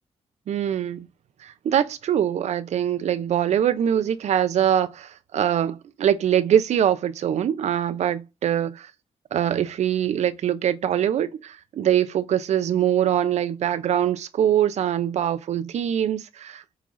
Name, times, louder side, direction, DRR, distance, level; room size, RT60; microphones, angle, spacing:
voice 1, 0.5-1.1 1.4-8.9 9.3-16.6, right 10 dB, 75° right, 0.9 m, -23 dB
8.1 x 4.0 x 5.6 m
wide cardioid pair, 150°, 12 cm